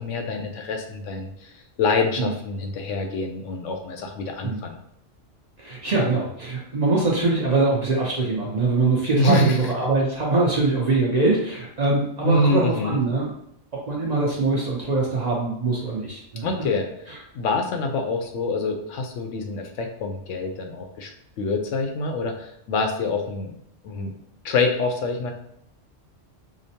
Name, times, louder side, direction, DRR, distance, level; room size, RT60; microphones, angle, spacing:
voice 1, 0.0-1.5 1.8-4.8 9.1-9.7 12.2-13.0 16.4-16.9 17.3-21.1 21.4-23.5 23.8-24.1 24.4-25.3, left 3 dB, 75° left, 4 dB, 1.0 m, -25 dB
voice 2, 5.6-13.3 13.9-16.7 17.1-17.2, right 3 dB, 40° right, -4 dB, 0.6 m, -23 dB
4.9 x 2.0 x 2.7 m, 0.73 s
omnidirectional pair, 1.3 m